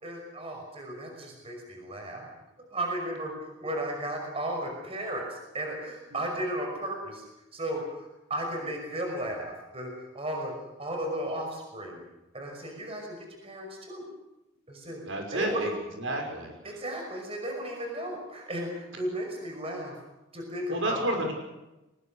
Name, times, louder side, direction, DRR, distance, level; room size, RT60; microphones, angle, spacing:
voice 1, 0.0-2.3 2.6-7.2 7.5-10.5 10.8-12.0 12.3-14.0 14.7-15.0 15.3-15.7 16.6-20.0 20.3-21.0, right 1 dB, 30° right, 2 dB, 5.7 m, -35 dB
voice 2, 15.0-16.5 20.7-21.3, right 1 dB, 75° right, 3 dB, 6.0 m, -31 dB
23.5 x 21.5 x 6.5 m, 0.99 s
head